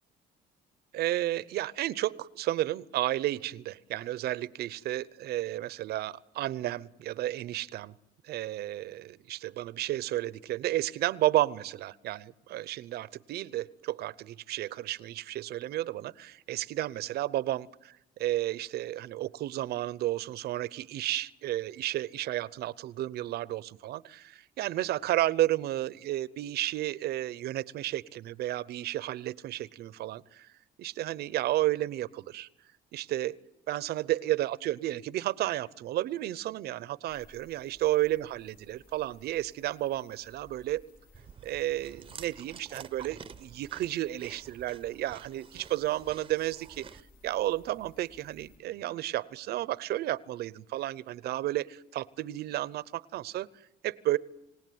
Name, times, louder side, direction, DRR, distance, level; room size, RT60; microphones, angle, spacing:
voice 1, 0.9-7.9 8.2-17.7 18.2-30.5 30.8-32.5 32.9-40.8 41.4-53.5 53.8-54.2, right 14 dB, 70° right, 0.8 m, -32 dB
sound 1, 37.1-48.6, left 2 dB, 60° left, 5.1 m, -60 dB
Chewing mastication, 41.1-47.0, right 7 dB, 30° right, 0.9 m, -49 dB
27.0 x 18.0 x 9.4 m
cardioid pair, 110°, 17 cm